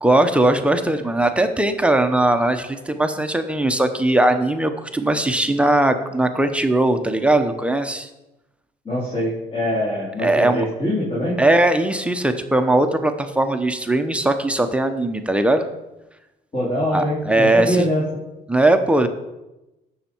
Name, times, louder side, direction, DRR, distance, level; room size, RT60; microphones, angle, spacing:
voice 1, 0.0-8.1 10.2-10.7 11.4-15.7 16.9-17.8 18.5-19.1, right 1 dB, 5° right, 7 dB, 0.9 m, -19 dB
voice 2, 8.8-11.4 16.5-18.0, equal, 35° left, -8 dB, 3.9 m, -23 dB
16.5 x 6.5 x 4.5 m, 0.98 s
cardioid pair, 110°, 17 cm